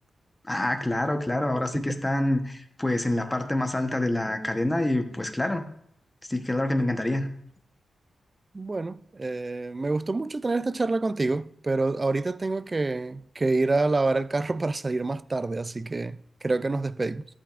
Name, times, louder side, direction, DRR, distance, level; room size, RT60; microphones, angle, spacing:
voice 1, 0.5-5.6 6.3-7.3, left 1 dB, 15° left, 1.0 m, -26 dB
voice 2, 8.5-17.3, right 3 dB, 25° right, 0.3 m, -27 dB
13.5 x 8.6 x 2.5 m
wide cardioid pair, 100°, 0 cm